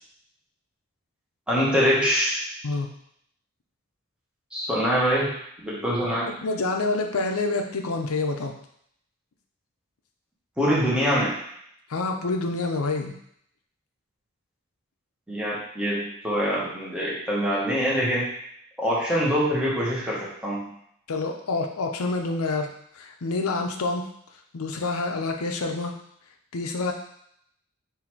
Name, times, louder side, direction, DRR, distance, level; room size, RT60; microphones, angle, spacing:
voice 1, 1.5-2.4 4.5-5.4 5.6-6.3 10.6-11.3 15.3-18.3 18.8-20.7, equal, 5° right, -7 dB, 1.1 m, -24 dB
voice 2, 6.4-8.5 11.9-13.1 21.1-24.1 24.5-26.0 26.5-26.9, left 3 dB, 90° left, 3 dB, 0.6 m, -27 dB
4.0 x 2.7 x 4.4 m, 0.70 s
head